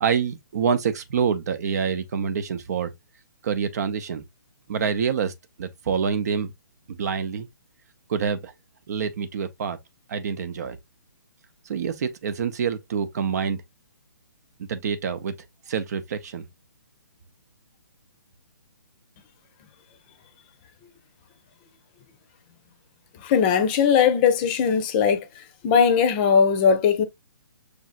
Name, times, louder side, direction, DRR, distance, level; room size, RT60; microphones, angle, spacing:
voice 1, 0.0-2.9 3.4-4.2 4.7-5.3 5.6-6.5 6.9-7.5 8.1-8.5 8.9-9.8 10.1-10.8 11.7-13.6 14.7-15.3 15.7-16.5, right 6 dB, 50° right, 0.7 m, -26 dB
voice 2, 23.2-25.2 25.6-27.0, left 7 dB, 30° left, 0.7 m, -19 dB
6.2 x 2.7 x 2.5 m
figure-of-eight pair, 140°, 11 cm